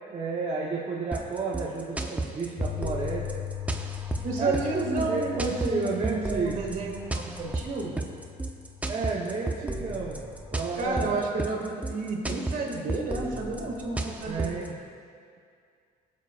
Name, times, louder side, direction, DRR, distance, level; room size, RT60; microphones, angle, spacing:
voice 1, 0.1-3.3 4.4-6.6 8.9-10.3 10.5-11.3 14.3-14.8, right 4 dB, 35° right, -5 dB, 1.0 m, -32 dB
sound 1, 1.1-14.7, right 2 dB, 10° right, 0.6 m, -33 dB
Piano, 2.6-10.7, left 12 dB, 35° left, 1.3 m, -40 dB
voice 2, 4.2-7.9 10.8-14.5, right 3 dB, 55° right, 0 dB, 2.1 m, -31 dB
19.0 x 7.5 x 2.5 m, 2.3 s
cardioid pair, 110°, 17 cm